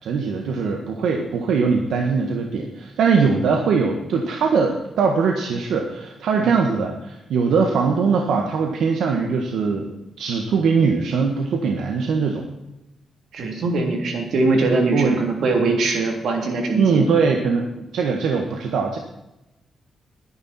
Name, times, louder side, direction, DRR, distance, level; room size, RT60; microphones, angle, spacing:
voice 1, 0.0-12.5 14.9-15.2 16.8-19.0, right 5 dB, 85° right, 2 dB, 1.6 m, -21 dB
voice 2, 13.3-17.1, right 3 dB, 65° right, 2 dB, 3.3 m, -21 dB
21.0 x 10.5 x 4.4 m, 0.92 s
wide cardioid pair, 165°, 0 cm